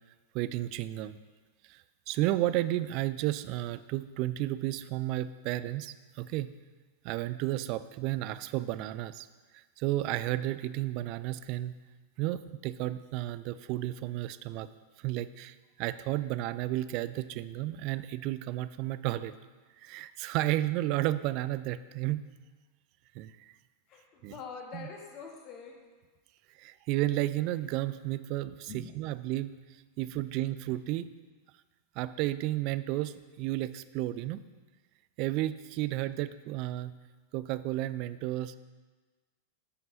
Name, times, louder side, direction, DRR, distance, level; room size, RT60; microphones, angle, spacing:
voice 1, 0.3-1.2 1.7-6.5 7.0-9.3 9.5-11.8 12.2-14.7 15.0-19.3 19.8-22.3 23.1-23.5 24.2-24.3 24.7-24.9 26.6-29.6 30.0-31.1 32.0-34.4 35.2-36.9 37.3-38.6, right 15 dB, 45° right, 14 dB, 0.3 m, -32 dB
voice 2, 23.9-25.7 28.7-28.8, left 5 dB, 35° left, 1 dB, 1.5 m, -44 dB
14.0 x 5.3 x 2.7 m, 1.3 s
figure-of-eight pair, 90°, 0 cm